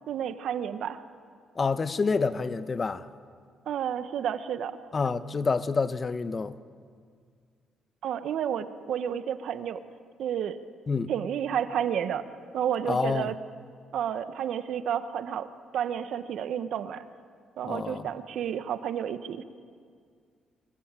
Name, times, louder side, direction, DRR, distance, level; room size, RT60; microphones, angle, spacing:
voice 1, 0.1-1.0 3.7-4.7 8.0-9.8 10.2-10.6 11.1-12.2 12.5-13.3 13.9-17.0 17.6-19.4, right 9 dB, 75° right, 1.3 m, -31 dB
voice 2, 1.5-3.1 4.9-6.6 10.9-11.1 12.8-13.3 17.6-18.1, left 4 dB, 35° left, 1.1 m, -28 dB
24.5 x 23.0 x 9.1 m
cardioid pair, 90°, 0 cm